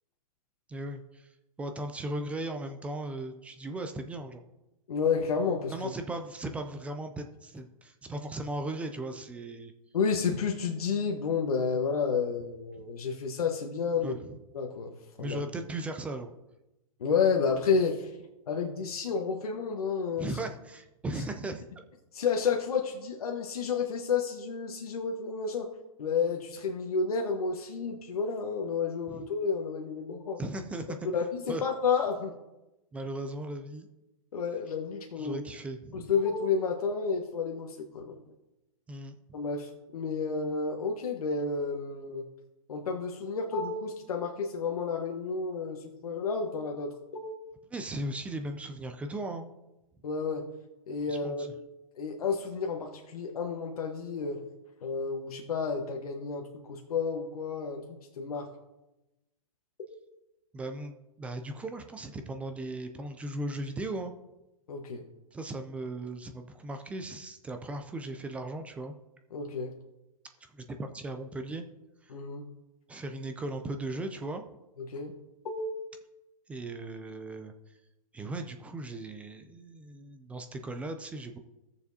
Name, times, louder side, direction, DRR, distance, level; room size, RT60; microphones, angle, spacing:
voice 1, 0.7-1.3 1.6-4.4 5.7-9.7 14.0-14.3 15.2-16.3 20.2-21.6 29.1-29.2 30.4-31.0 31.5-31.6 32.9-33.9 35.2-36.1 38.9-39.2 47.7-49.5 51.1-51.5 60.5-64.1 65.3-68.9 70.5-71.6 72.0-72.1 72.9-74.4 76.5-77.5 78.1-81.4, right 2 dB, 5° right, 6 dB, 0.3 m, -37 dB
voice 2, 4.9-5.7 9.9-14.2 14.5-15.4 17.0-18.1 18.5-20.3 22.1-25.7 26.0-30.4 31.1-32.3 34.3-35.4 35.9-38.2 39.3-42.2 42.7-47.3 50.0-50.4 50.9-51.4 51.9-54.4 54.8-58.5 64.7-65.0 69.3-69.7 72.1-72.4 74.8-75.1 75.4-75.7, left 5 dB, 80° left, 2 dB, 1.2 m, -31 dB
15.5 x 6.9 x 2.7 m, 0.97 s
hypercardioid pair, 145°, 19 cm